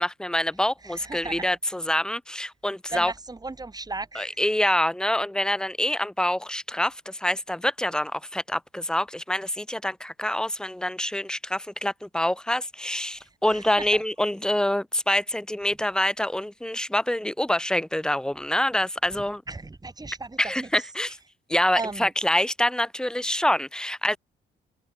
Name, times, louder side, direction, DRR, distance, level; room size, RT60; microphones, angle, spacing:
voice 1, 0.0-3.1 4.1-19.4 20.4-21.2 21.5-24.2, left 1 dB, 5° left, 1.1 m, -26 dB
voice 2, 0.8-1.5 2.9-4.3 13.5-14.0 19.5-20.7 21.7-22.1, right 3 dB, 20° right, 4.5 m, -36 dB
cardioid pair, 90°, 20 cm